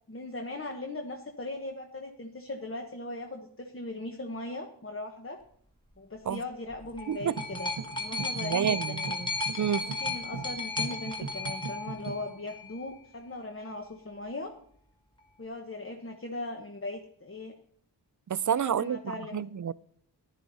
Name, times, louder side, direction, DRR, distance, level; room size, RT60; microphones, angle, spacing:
voice 1, 0.1-5.4 6.0-7.7 8.0-9.3 9.8-14.5 15.4-17.6 18.6-19.4, left 2 dB, 30° left, 1.2 m, -39 dB
sound 1, 6.7-12.7 13.6-13.7, left 3 dB, 10° left, 1.5 m, -35 dB
sound 2, 7.2-12.3, right 5 dB, 85° right, 1.1 m, -40 dB
voice 2, 8.1-9.0 9.6-9.9 18.3-19.7, right 8 dB, 45° right, 0.4 m, -29 dB
15.0 x 11.5 x 4.1 m
wide cardioid pair, 85°, 42 cm